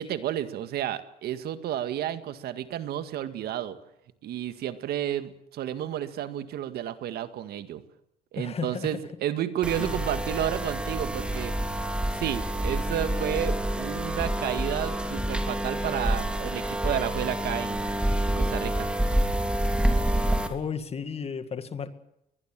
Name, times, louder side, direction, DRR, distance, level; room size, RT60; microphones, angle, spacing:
voice 1, 0.0-3.8 4.2-7.8 8.3-11.5 12.1-17.8 18.4-18.9, right 11 dB, 70° right, 1.9 m, -31 dB
voice 2, 8.4-8.9 9.8-10.0 20.5-21.9, left 6 dB, 35° left, 2.1 m, -33 dB
sound 1, 9.6-20.5, right 1 dB, 5° right, 3.3 m, -28 dB
22.5 x 20.5 x 7.6 m
cardioid pair, 110°, 17 cm